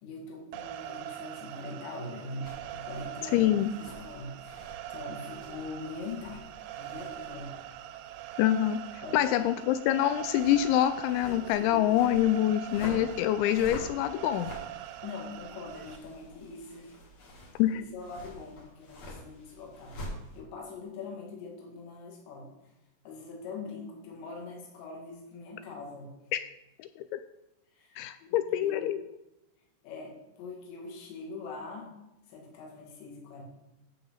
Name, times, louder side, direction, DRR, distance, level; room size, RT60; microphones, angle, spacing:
voice 1, 0.0-3.5 3.8-7.6 9.0-9.3 11.2-11.8 15.0-17.0 17.2-20.0 20.4-22.5 23.0-26.1 27.7-28.9 29.8-31.9 32.3-33.4, left 3 dB, 65° left, -1 dB, 4.2 m, -43 dB
sound 1, 0.5-16.0, right 13 dB, 85° right, 3.0 m, -43 dB
sound 2, 2.4-20.4, equal, 45° left, 2.5 m, -48 dB
voice 2, 3.3-3.7 8.4-8.8 9.1-14.5 17.6-17.8 26.3-26.4 26.8-27.2 28.0-29.0, left 12 dB, 85° left, 11 dB, 2.6 m, -26 dB
14.0 x 7.0 x 3.9 m, 0.92 s
omnidirectional pair, 5.8 m